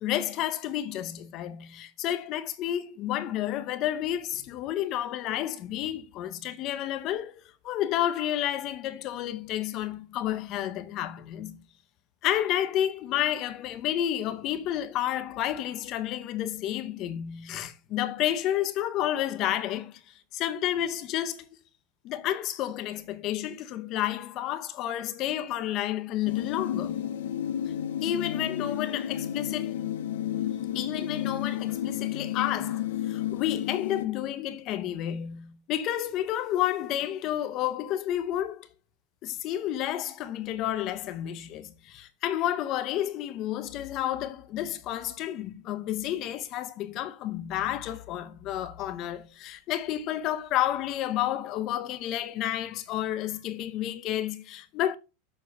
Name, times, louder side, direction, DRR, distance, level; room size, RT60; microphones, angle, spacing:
voice 1, 0.0-11.6 12.2-21.5 22.0-27.0 28.0-29.7 30.7-38.7 39.2-55.0, left 12 dB, 30° left, 0.7 m, -30 dB
sound 1, 26.3-34.1, left 11 dB, 85° left, 0.8 m, -32 dB
6.9 x 6.9 x 5.2 m
supercardioid pair, 175°, 0 cm